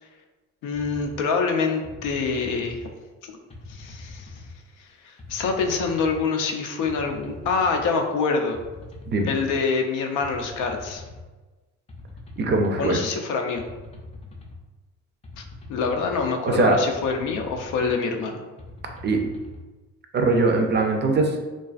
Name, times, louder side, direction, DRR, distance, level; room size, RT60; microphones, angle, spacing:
voice 1, 0.6-2.9 3.2-3.3 3.7-4.3 4.8-8.6 9.3-11.0 12.8-13.6 15.4-15.5 15.7-18.4, left 4 dB, 90° left, 3 dB, 0.5 m, -26 dB
sound 1, 0.7-1.2 1.8-2.9 3.5-4.5 5.2-6.2 6.8-7.9 8.5-9.6 10.2-11.2 11.9-12.9 13.5-14.6 15.2-16.3 16.9-17.9 18.6-19.6, left 2 dB, 20° left, 0.4 m, -42 dB
voice 2, 12.4-13.0 16.4-16.8 19.0-19.2 20.1-21.5, right 3 dB, 35° right, 3 dB, 0.4 m, -21 dB
2.4 x 2.3 x 2.4 m, 1.2 s
cardioid pair, 90°, 30 cm